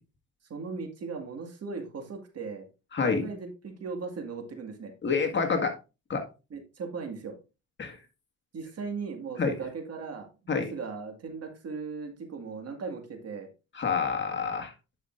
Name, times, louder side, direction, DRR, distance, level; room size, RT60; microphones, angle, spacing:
voice 1, 0.5-2.7 3.0-4.9 6.5-7.4 8.5-13.5, right 4 dB, 55° right, 4 dB, 2.0 m, -38 dB
voice 2, 2.9-3.3 5.0-5.7 6.1-6.2 7.8-8.0 9.4-9.5 10.5-10.7 13.8-14.7, left 5 dB, 40° left, 4 dB, 1.7 m, -27 dB
10.5 x 5.6 x 2.5 m, 0.29 s
cardioid pair, 90°, 30 cm